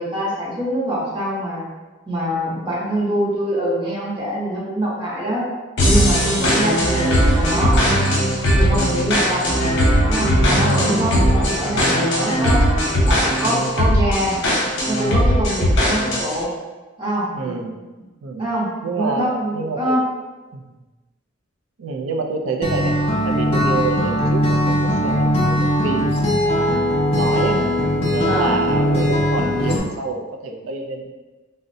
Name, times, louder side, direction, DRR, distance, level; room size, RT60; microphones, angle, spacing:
voice 1, 0.0-1.6 2.1-5.4 5.9-7.8 8.5-9.4 10.1-12.6 13.1-14.4 14.9-16.5 17.0-17.6 18.4-20.0 28.2-28.5, right 1 dB, 25° right, -6 dB, 0.8 m, -24 dB
sound 1, 5.8-16.4, equal, 55° left, 0.8 m, -18 dB
voice 2, 10.6-11.2 17.3-17.8 18.2-18.5 18.8-20.0 20.5-20.8 21.8-22.9 23.2-26.8 27.1-27.6 28.1-31.1, right 3 dB, 85° right, 3 dB, 0.4 m, -27 dB
Acoustic guitar, 22.6-29.8, equal, 30° left, 0.5 m, -19 dB
3.7 x 2.1 x 2.6 m, 1.2 s
head